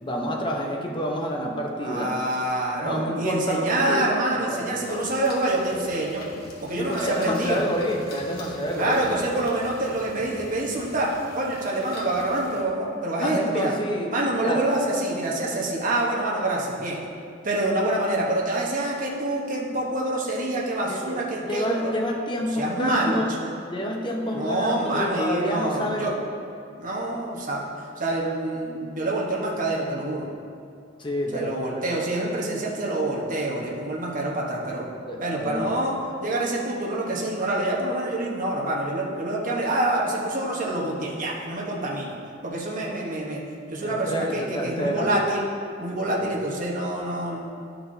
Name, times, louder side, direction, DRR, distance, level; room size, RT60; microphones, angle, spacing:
voice 1, 0.0-2.2 2.8-5.0 6.8-9.0 13.2-14.1 14.4-14.6 20.9-21.2 21.4-23.3 23.7-26.1 31.0-31.5 33.5-33.8 35.1-35.7 43.8-45.1 46.1-46.3, equal, 25° left, -1 dB, 0.9 m, -28 dB
voice 2, 1.8-6.2 6.6-7.6 8.7-13.7 14.1-17.0 17.4-21.9 22.6-23.2 24.3-26.1 26.8-27.6 28.0-30.3 31.3-34.9 35.2-42.2 42.4-43.4 43.7-45.4 45.8-47.4, right 1 dB, 45° right, -4 dB, 1.1 m, -26 dB
sound 1, 4.8-12.6, left 1 dB, 50° left, 1.3 m, -44 dB
11.5 x 5.9 x 2.8 m, 2.4 s
head